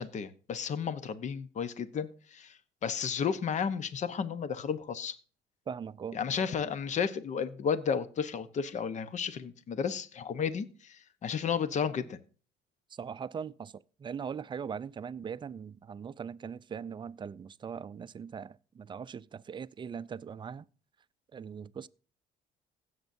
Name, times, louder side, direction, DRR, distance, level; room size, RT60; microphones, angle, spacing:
voice 1, 0.0-2.5 2.8-5.2 6.1-12.2, left 7 dB, 45° left, 1.0 m, -33 dB
voice 2, 5.7-6.4 12.9-20.7 21.3-21.9, right 7 dB, 30° right, 0.4 m, -40 dB
16.5 x 8.0 x 2.7 m
cardioid pair, 110°, 17 cm